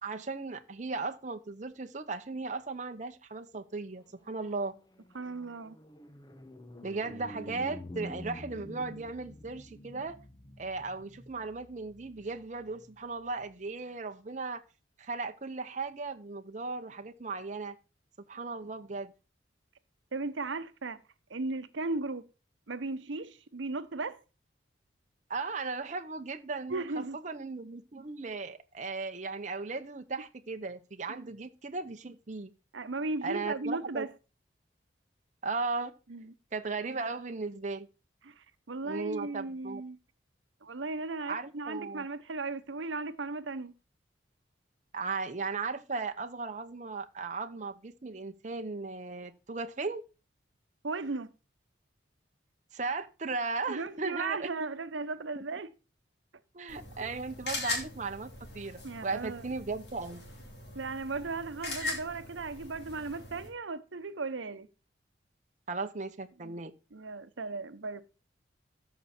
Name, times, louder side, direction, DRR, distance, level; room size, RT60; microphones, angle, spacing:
voice 1, 0.0-4.7 6.8-10.2 10.6-14.6 15.0-17.8 18.3-19.1 25.3-26.8 27.1-32.5 33.2-34.1 35.4-35.9 36.5-37.9 38.8-39.8 41.3-42.1 44.9-50.0 52.7-54.5 55.4-55.5 56.5-60.2 65.7-66.7, right 3 dB, 40° right, 0.8 m, -36 dB
sound 1, 4.1-13.6, equal, 20° left, 0.9 m, -48 dB
voice 2, 5.1-5.8 20.1-21.0 21.3-22.2 22.7-24.2 26.7-27.2 31.1-31.3 32.7-34.1 36.1-36.3 38.2-40.0 40.6-43.7 50.8-51.3 53.7-55.7 57.0-57.1 58.8-59.4 60.7-64.7 66.4-66.6 66.9-68.0, right 3 dB, 90° right, 0.9 m, -36 dB
sound 2, 56.7-63.5, left 2 dB, 60° left, 4.2 m, -40 dB
14.0 x 6.0 x 4.3 m
head